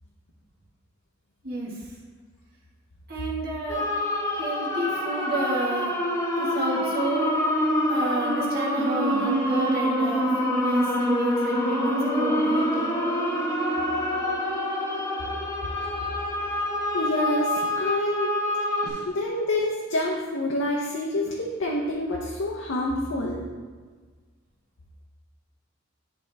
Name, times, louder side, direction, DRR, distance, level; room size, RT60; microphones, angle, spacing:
voice 1, 3.1-3.8 4.3-5.9 6.4-7.3 7.9-12.9, right 2 dB, 50° right, -5 dB, 1.5 m, -30 dB
sound 1, 3.7-18.9, equal, 15° left, 1.0 m, -26 dB
voice 2, 16.9-18.3 18.8-23.5, left 1 dB, 65° left, -2 dB, 0.7 m, -27 dB
10.5 x 3.5 x 3.3 m, 1.5 s
head